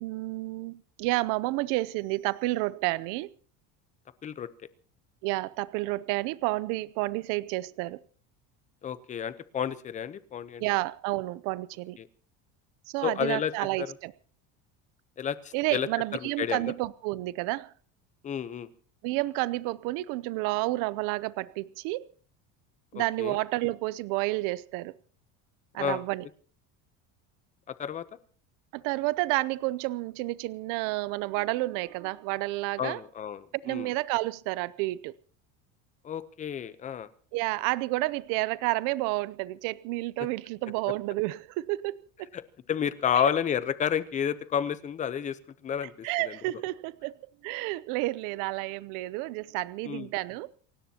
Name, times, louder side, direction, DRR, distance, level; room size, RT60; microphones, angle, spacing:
voice 1, 0.0-3.3 5.2-8.0 10.6-12.0 12.9-14.1 15.5-17.7 19.0-22.1 22.9-24.9 25.7-26.3 28.7-33.0 33.6-35.1 37.3-42.3 43.1-43.3 46.0-47.2 47.4-50.5, right 20 dB, 60° right, 0.7 m, -30 dB
voice 2, 8.8-10.6 12.0-12.1 13.0-13.5 13.8-13.9 15.2-15.9 16.4-16.7 18.2-18.7 22.9-23.4 25.8-26.0 27.7-28.1 32.8-33.9 36.0-37.1 42.3-42.4 42.7-45.9 46.2-46.4 49.8-50.1, left 8 dB, 20° left, 0.8 m, -31 dB
28.5 x 16.5 x 2.9 m
cardioid pair, 175°, 36 cm